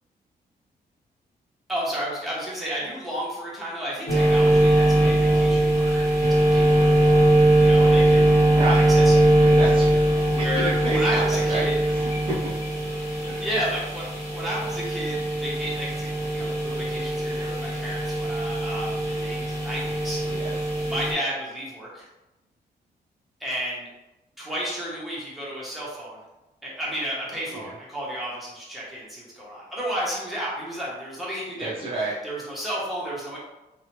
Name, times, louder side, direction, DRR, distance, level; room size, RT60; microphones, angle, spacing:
voice 1, 1.7-6.9 7.5-8.4 8.7-9.3 10.3-11.7 13.4-14.0 14.3-20.2 20.8-22.1 23.4-23.9 24.4-26.2 26.6-31.7 32.2-33.4, equal, ahead, -7 dB, 0.7 m, -32 dB
sound 1, 4.1-21.1, right 1 dB, 15° left, 1.0 m, -21 dB
voice 2, 8.5-8.9 9.4-12.6 13.3-13.5 20.3-20.6 27.5-27.7 31.6-32.2, right 2 dB, 35° right, -6 dB, 0.4 m, -31 dB
2.7 x 2.1 x 2.9 m, 1.0 s
wide cardioid pair, 180°, 16 cm